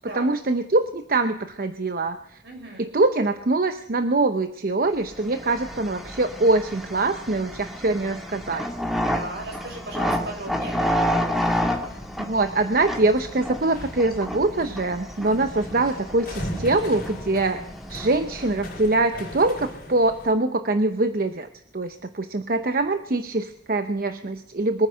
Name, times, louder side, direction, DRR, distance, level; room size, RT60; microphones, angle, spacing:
voice 1, 0.1-2.2 2.8-8.6 12.2-17.6 17.9-21.5 21.7-24.9, right 2 dB, 55° right, 8 dB, 0.8 m, -23 dB
voice 2, 2.4-2.9 9.1-11.0 15.5-15.6, right 2 dB, 80° right, 1 dB, 6.4 m, -36 dB
sound 1, 5.1-19.0, equal, ahead, 1.9 m, -30 dB
sound 2, 11.4-20.3, left 1 dB, 55° left, 4.7 m, -39 dB
23.0 x 9.5 x 5.6 m, 0.76 s
head